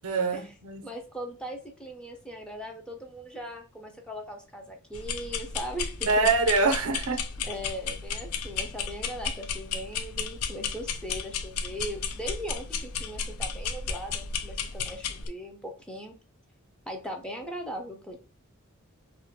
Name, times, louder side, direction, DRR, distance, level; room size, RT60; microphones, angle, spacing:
voice 1, 0.0-0.8 6.1-7.4, right 3 dB, 85° right, 0.5 m, -25 dB
voice 2, 0.8-6.3 7.4-16.2 16.9-18.2, equal, 5° left, 0.4 m, -39 dB
sound 1, 4.9-15.3, left 6 dB, 90° left, 0.4 m, -34 dB
2.4 x 2.2 x 2.7 m
head